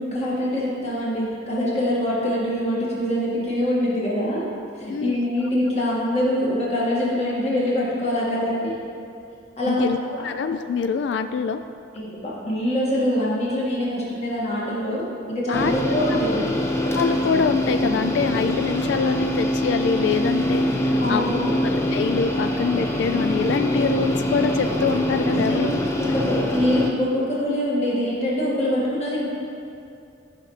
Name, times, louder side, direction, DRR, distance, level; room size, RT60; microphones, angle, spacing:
voice 1, 0.0-4.5 4.8-8.8 9.6-9.9 11.9-16.6 21.0-21.5 25.3-29.3, left 1 dB, 35° left, -6 dB, 2.0 m, -24 dB
voice 2, 9.7-10.0 10.2-11.6 15.5-15.7 16.9-25.7, left 5 dB, 70° left, 9 dB, 0.3 m, -24 dB
sound 1, 15.5-26.9, left 1 dB, 15° left, 0.7 m, -24 dB
12.5 x 5.7 x 3.3 m, 2.6 s
head